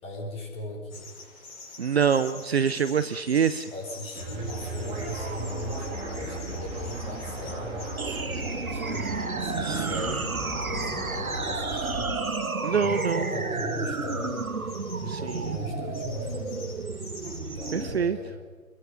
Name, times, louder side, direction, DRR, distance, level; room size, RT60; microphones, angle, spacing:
voice 1, 0.0-1.1 3.7-12.1 12.7-16.7 17.4-18.4, left 1 dB, 15° left, 0 dB, 4.4 m, -38 dB
sound 1, 0.9-17.8, left 4 dB, 40° left, 5.9 m, -46 dB
voice 2, 1.8-3.7 9.6-10.2 12.6-13.3 15.1-15.6 17.7-18.2, right 7 dB, 45° right, 13 dB, 0.8 m, -26 dB
sound 2, 4.2-12.4, right 2 dB, 15° right, 3.4 m, -36 dB
sound 3, 8.0-18.0, right 4 dB, 75° right, 1.9 m, -32 dB
28.0 x 22.5 x 5.8 m, 1.4 s
figure-of-eight pair, 135°, 42 cm